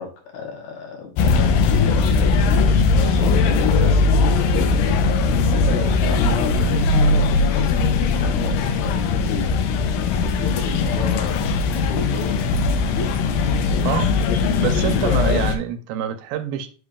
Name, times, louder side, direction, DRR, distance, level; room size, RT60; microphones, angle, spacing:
voice 1, 0.0-5.0 5.3-6.6 7.0-9.8 10.1-13.2, left 5 dB, 65° left, 2.2 m, -33 dB
sound 1, 1.2-15.6, left 4 dB, 90° left, 2.5 m, -19 dB
voice 2, 14.6-16.7, right 10 dB, 85° right, 2.4 m, -26 dB
7.9 x 5.2 x 2.4 m
omnidirectional pair, 4.0 m